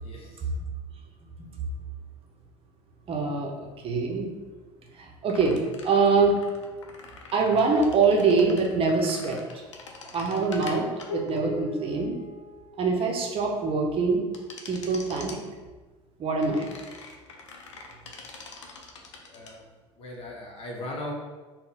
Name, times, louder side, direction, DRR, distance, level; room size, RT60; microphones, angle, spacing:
voice 1, 0.0-0.4 19.2-19.6 20.0-21.1, left 1 dB, 40° left, -1 dB, 1.0 m, -38 dB
voice 2, 3.1-3.5 3.8-4.3 5.0-5.5 5.8-6.4 7.3-9.4 10.1-10.9 11.1-12.1 12.8-14.2 14.7-15.4 16.2-16.7, right 4 dB, 40° right, 0 dB, 0.7 m, -24 dB
sound 1, 5.3-13.1 14.3-15.4 16.4-19.5, left 3 dB, 80° left, 0.5 m, -42 dB
3.8 x 2.2 x 3.9 m, 1.3 s
figure-of-eight pair, 65°, 15 cm